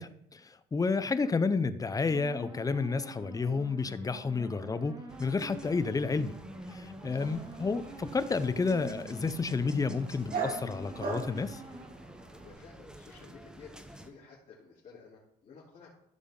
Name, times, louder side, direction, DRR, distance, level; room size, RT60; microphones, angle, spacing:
voice 1, 0.0-6.4 6.7-11.6, left 4 dB, 20° left, 13 dB, 0.6 m, -31 dB
sound 1, 2.1-11.9, right 2 dB, 25° right, 1.8 m, -46 dB
sound 2, 5.1-14.1, right 1 dB, 5° right, 0.9 m, -51 dB
Dog, 7.2-12.5, right 5 dB, 60° right, 2.8 m, -41 dB
voice 2, 12.0-15.9, left 5 dB, 40° left, -7 dB, 3.4 m, -53 dB
14.5 x 5.7 x 3.8 m, 0.74 s
cardioid pair, 110°, 17 cm